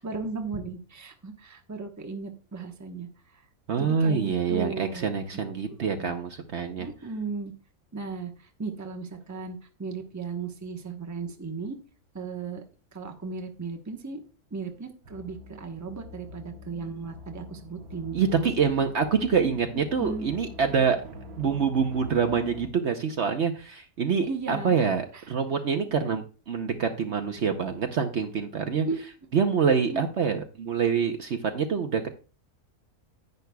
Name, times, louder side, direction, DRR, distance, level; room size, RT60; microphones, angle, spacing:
voice 1, 0.0-3.1 3.3-3.4 3.8-6.1 6.8-7.5 7.9-11.8 12.1-12.6 12.9-14.2 14.5-18.5 19.4-20.3 24.2-24.8 25.1-25.2 28.8-29.1 29.9-30.0, right 4 dB, 15° right, 4 dB, 0.9 m, -36 dB
voice 2, 3.7-6.9 18.1-21.0 21.4-28.9 29.3-32.1, right 6 dB, 55° right, 6 dB, 1.0 m, -26 dB
sound 1, 15.0-22.7, left 1 dB, 90° right, 1.7 m, -45 dB
10.5 x 9.8 x 2.3 m, 0.34 s
omnidirectional pair, 1.5 m